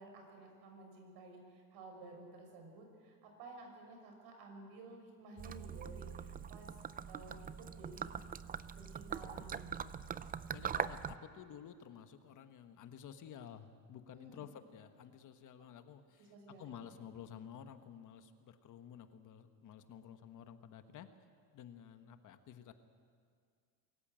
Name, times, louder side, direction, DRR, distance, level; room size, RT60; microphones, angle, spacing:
voice 1, 0.0-6.7 7.1-8.4 8.8-9.9 14.1-14.4 15.6-15.7 16.2-16.7, right 2 dB, 70° right, 3 dB, 5.9 m, -54 dB
Gurgling / Liquid, 5.4-11.2, right 7 dB, 20° right, 0.4 m, -42 dB
voice 2, 10.5-21.1 21.5-22.7, left 8 dB, 50° left, 9 dB, 1.4 m, -52 dB
23.5 x 14.5 x 9.0 m, 2.1 s
cardioid pair, 130°, 40 cm